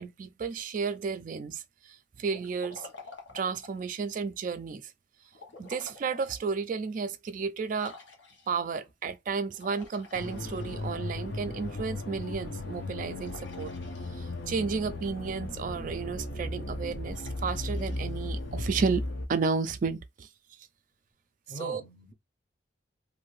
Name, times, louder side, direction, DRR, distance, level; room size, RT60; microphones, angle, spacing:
voice 1, 0.0-2.9 3.3-4.9 5.6-8.0 8.5-13.7 14.1-19.0 19.3-20.3 21.6-21.8, right 5 dB, 45° right, 0.3 m, -32 dB
Liquid, 2.3-3.9 5.3-6.4 6.9-7.0 7.7-8.7 9.5-11.2 13.2-14.6 17.1-18.7, left 4 dB, 80° left, 1.1 m, -50 dB
sound 1, 10.1-19.3, left 1 dB, 65° left, 0.7 m, -36 dB
voice 2, 21.5-22.1, equal, 30° left, 0.8 m, -44 dB
2.6 x 2.5 x 3.1 m
head